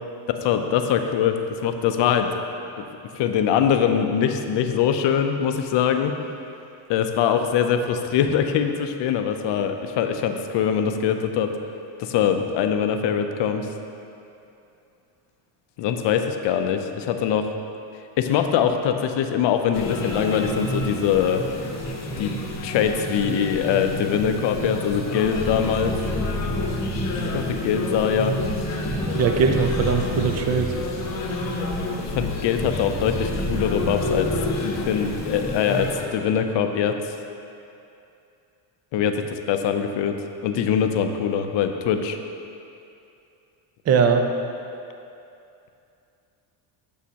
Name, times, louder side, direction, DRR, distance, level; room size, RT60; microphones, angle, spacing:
voice 1, 0.4-2.3 3.1-6.1 6.9-11.5 12.0-13.7 15.8-17.5 18.2-21.4 22.2-22.4 22.6-26.0 27.3-28.3 32.0-37.0 38.9-40.2 40.4-42.2, left 8 dB, 60° left, 6 dB, 0.6 m, -23 dB
sound 1, 19.7-36.0, left 1 dB, 30° left, 0.9 m, -29 dB
sound 2, 25.3-35.4, left 1 dB, 10° left, 0.8 m, -33 dB
voice 2, 29.1-30.7 43.9-44.2, right 5 dB, 35° right, 5 dB, 0.5 m, -20 dB
8.3 x 6.4 x 2.9 m, 2.7 s
cardioid pair, 115°, 50 cm